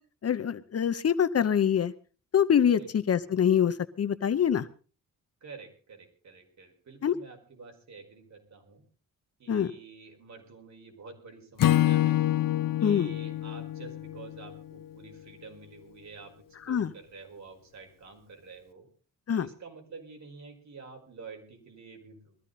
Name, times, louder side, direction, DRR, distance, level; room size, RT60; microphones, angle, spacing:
voice 1, 0.2-1.9 2.3-4.7 7.0-7.1 9.5-9.7 12.8-13.1 16.7-16.9 19.3-19.5, left 8 dB, 45° left, 13 dB, 0.8 m, -25 dB
voice 2, 5.4-8.8 9.4-12.2 12.8-18.9 19.3-22.4, right 4 dB, 60° right, 3 dB, 5.2 m, -48 dB
Acoustic guitar / Strum, 11.6-14.9, left 13 dB, 80° left, 0.7 m, -27 dB
21.5 x 14.0 x 4.1 m, 0.39 s
wide cardioid pair, 135°, 33 cm